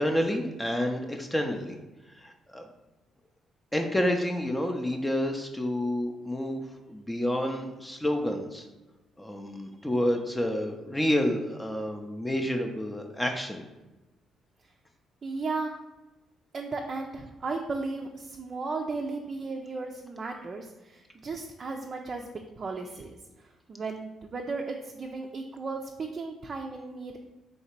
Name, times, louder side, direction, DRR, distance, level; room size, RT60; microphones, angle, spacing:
voice 1, 0.0-1.8 2.2-2.6 3.7-6.6 6.9-8.7 9.2-13.6, left 1 dB, 10° left, 3 dB, 0.5 m, -29 dB
voice 2, 15.2-15.8 16.5-22.3 22.6-27.2, right 3 dB, 45° right, 2 dB, 0.4 m, -35 dB
3.2 x 2.8 x 4.4 m, 1.1 s
supercardioid pair, 75°, 0 cm